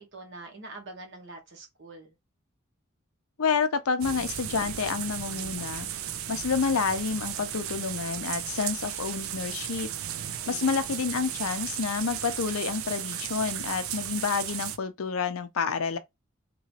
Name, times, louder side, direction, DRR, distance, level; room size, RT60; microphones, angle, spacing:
voice 1, 0.0-2.1 10.4-10.9, right 2 dB, 55° right, 1.3 m, -45 dB
voice 2, 3.4-5.9 6.3-9.9 10.5-16.0, left 5 dB, 85° left, 0.6 m, -29 dB
sound 1, 4.0-14.8, right 10 dB, 75° right, 0.5 m, -35 dB
3.0 x 2.9 x 2.8 m
head